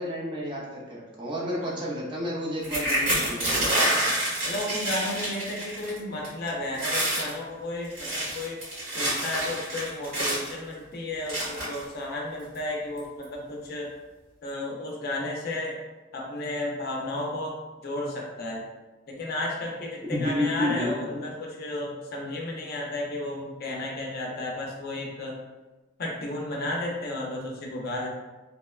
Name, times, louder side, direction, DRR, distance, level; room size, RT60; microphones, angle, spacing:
voice 1, 0.0-3.9 20.1-21.1, left 1 dB, 25° right, -4 dB, 0.5 m, -31 dB
sound 1, 2.6-6.0 6.2-6.5 6.7-7.3 7.8-10.5 11.3-11.8 12.5-12.6 13.0-13.2, right 1 dB, 80° right, 1.5 m, -27 dB
voice 2, 4.4-8.6 8.9-13.9 14.4-15.8 16.1-18.7 19.1-25.4 26.0-28.1, left 1 dB, 55° left, -1 dB, 0.5 m, -33 dB
2.8 x 2.1 x 2.2 m, 1.2 s
head